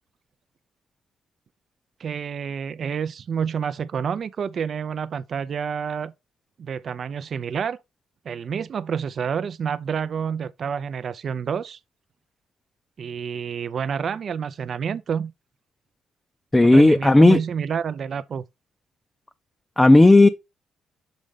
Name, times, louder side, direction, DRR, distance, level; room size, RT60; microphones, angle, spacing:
voice 1, 2.0-6.1 6.6-7.8 8.3-11.8 13.0-15.3 16.6-18.4, right 7 dB, 55° right, 0.5 m, -28 dB
voice 2, 16.5-17.4 19.8-20.3, left 2 dB, 15° left, 0.5 m, -12 dB
6.4 x 5.1 x 3.5 m
cardioid pair, 90°, 0 cm